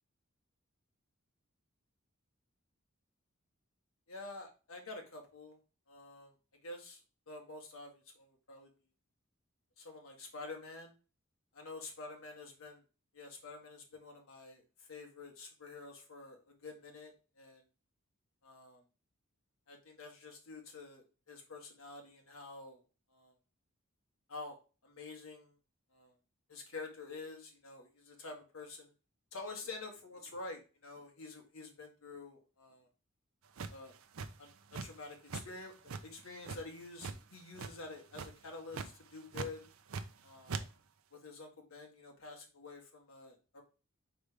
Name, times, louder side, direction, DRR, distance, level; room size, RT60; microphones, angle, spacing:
voice 1, 4.1-5.6 5.9-6.3 6.6-8.7 9.8-10.9 11.5-12.8 13.1-17.6 18.4-18.8 19.7-22.8 23.1-23.3 24.3-25.5 25.9-26.1 26.5-28.9 29.3-32.9 33.7-33.9 34.4-39.7 40.2-40.7 41.1-43.6, left 3 dB, 75° left, 2 dB, 1.7 m, -48 dB
sound 1, 33.6-35.0 35.3-35.5 35.9-37.2 37.5-37.9 38.1-38.4 38.7-38.9 39.3-40.2 40.5-40.6, right 4 dB, 80° right, 0.6 m, -41 dB
4.9 x 3.9 x 5.0 m, 0.33 s
head